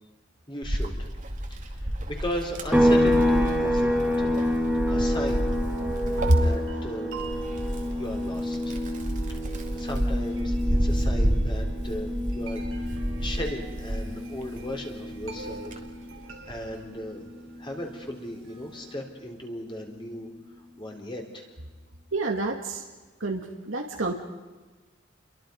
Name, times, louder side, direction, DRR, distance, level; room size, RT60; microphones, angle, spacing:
voice 1, 0.5-1.1 1.5-4.4 4.9-5.5 6.3-7.1 7.9-8.8 9.5-15.8 16.5-17.3 17.6-20.3 20.8-21.5, left 1 dB, 25° left, 1 dB, 3.7 m, -37 dB
Wind, 0.6-14.7 15.2-16.7, equal, 40° right, 2.5 m, -30 dB
sound 1, 2.7-16.3 16.6-18.8, left 1 dB, 5° right, 3.5 m, -28 dB
sound 2, 4.9-19.0, right 5 dB, 90° right, 4.0 m, -46 dB
voice 2, 22.1-22.9 23.2-24.1, right 1 dB, 75° right, 1 dB, 2.1 m, -26 dB
29.5 x 23.0 x 5.3 m, 1.3 s
head